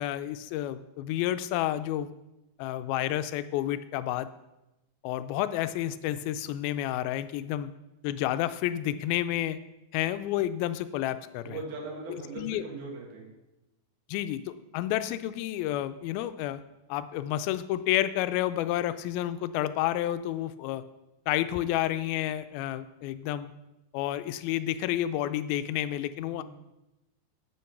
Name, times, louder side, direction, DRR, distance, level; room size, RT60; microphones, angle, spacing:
voice 1, 0.0-2.1 2.6-4.3 5.0-7.7 8.0-9.6 9.9-11.6 12.1-12.6 14.1-16.6 16.9-20.8 21.3-23.5 23.9-26.4, left 13 dB, 90° left, 12 dB, 2.4 m, -30 dB
voice 2, 11.4-13.3 26.3-26.4, right 3 dB, 90° right, 0 dB, 3.8 m, -39 dB
8.5 x 7.6 x 5.9 m, 0.96 s
omnidirectional pair, 4.2 m